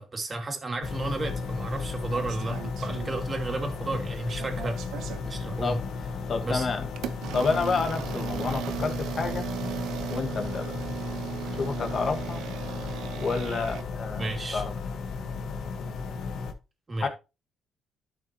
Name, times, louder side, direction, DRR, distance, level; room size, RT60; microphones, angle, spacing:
voice 1, 0.0-4.8 5.2-5.8 6.4-6.7 14.2-14.6 16.9-17.1, right 2 dB, 30° right, 2.5 m, -33 dB
sound 1, 0.8-16.5, left 4 dB, 75° left, 1.4 m, -34 dB
sound 2, 2.1-3.6 3.9-5.3 5.9-6.1 6.9-13.8, right 10 dB, 85° right, 0.5 m, -37 dB
voice 2, 6.3-6.9 7.3-9.5 10.1-10.8 11.6-12.4 13.2-14.7 17.0-17.1, left 4 dB, 50° left, 1.6 m, -29 dB
12.0 x 5.7 x 3.0 m
cardioid pair, 90°, 0 cm